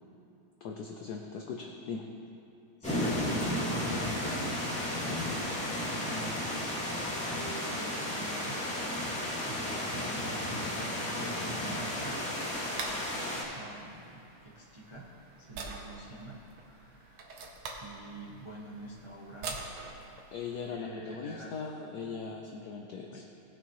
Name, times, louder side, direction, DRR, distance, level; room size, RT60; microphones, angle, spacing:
voice 1, 0.6-2.1 20.3-23.2, left 5 dB, 70° left, 2 dB, 1.0 m, -39 dB
sound 1, 2.8-13.4, left 1 dB, 5° left, 2.1 m, -33 dB
voice 2, 2.8-5.6 5.9-8.6 9.4-15.1 15.4-17.3 17.8-19.6 20.6-21.5 23.1-23.2, right 1 dB, 45° right, -4 dB, 0.3 m, -46 dB
sound 2, 11.4-20.7, right 3 dB, 80° right, 1.8 m, -46 dB
19.0 x 6.9 x 3.1 m, 2.7 s
omnidirectional pair, 2.4 m